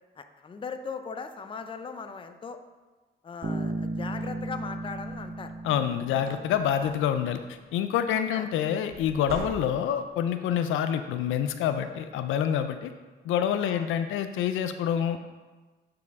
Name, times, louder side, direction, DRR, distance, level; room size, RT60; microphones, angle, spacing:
voice 1, 0.2-2.6 3.2-5.5 6.3-6.4 6.8-6.9 8.3-8.5 13.7-13.9, left 5 dB, 25° left, 8 dB, 0.5 m, -39 dB
Bass guitar, 3.4-7.2, right 2 dB, 30° right, 0.7 m, -35 dB
sound 1, 5.0-5.2 5.7-5.8 6.1-7.2 8.9-10.1, right 2 dB, 55° right, 1.5 m, -42 dB
voice 2, 5.6-7.4 7.7-12.9 13.3-15.3, left 9 dB, 85° left, 9 dB, 0.4 m, -27 dB
8.0 x 4.8 x 3.5 m, 1.3 s
cardioid pair, 90°, 20 cm